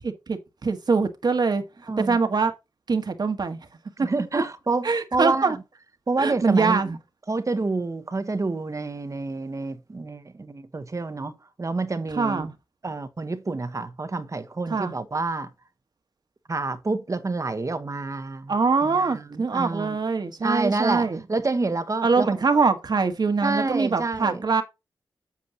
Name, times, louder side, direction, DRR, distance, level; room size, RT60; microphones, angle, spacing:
voice 1, 0.0-1.6 2.0-2.5 2.9-3.6 4.8-5.6 6.2-7.0 12.1-12.5 14.7-14.9 18.5-21.2 22.0-24.6, right 4 dB, 60° right, 1.6 m, -23 dB
voice 2, 1.9-2.2 4.0-5.5 6.1-6.8 7.3-12.5 12.8-15.5 16.5-18.5 18.8-20.0 20.4-22.3 23.4-24.4, right 3 dB, 40° right, 1.2 m, -28 dB
8.4 x 7.6 x 2.9 m
cardioid pair, 60°, 8 cm